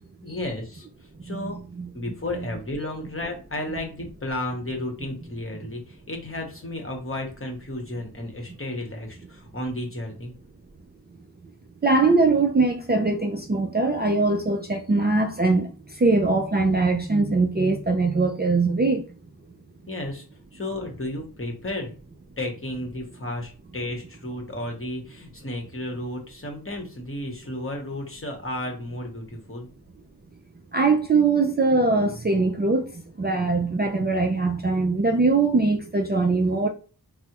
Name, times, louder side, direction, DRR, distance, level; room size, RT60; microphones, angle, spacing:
voice 1, 0.2-0.9 1.2-1.6 1.9-10.3 19.9-20.2 20.5-21.9 22.4-29.7, left 1 dB, 30° left, 0.9 m, -33 dB
voice 2, 1.3-1.9 11.8-19.0 30.7-36.7, right 3 dB, 25° right, 0.4 m, -22 dB
3.3 x 2.0 x 2.9 m
wide cardioid pair, 50°, 40 cm